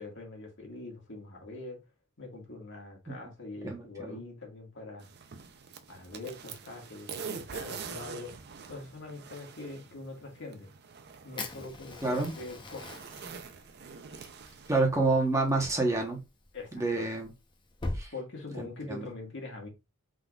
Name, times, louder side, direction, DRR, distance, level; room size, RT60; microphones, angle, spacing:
voice 1, 0.0-1.8 2.2-5.1 5.9-8.3 8.7-10.7 11.2-13.0 16.5-17.1 18.1-19.7, left 3 dB, 60° left, 1.8 m, -43 dB
voice 2, 3.6-4.2 12.0-12.3 14.7-16.2 16.7-17.3 17.9-18.1 18.6-19.1, right 3 dB, 15° right, 1.0 m, -28 dB
sound 1, 5.0-14.8, right 6 dB, 55° right, 0.6 m, -45 dB
Fire, 11.4-18.0, left 2 dB, 25° left, 0.8 m, -43 dB
5.7 x 3.8 x 2.4 m
head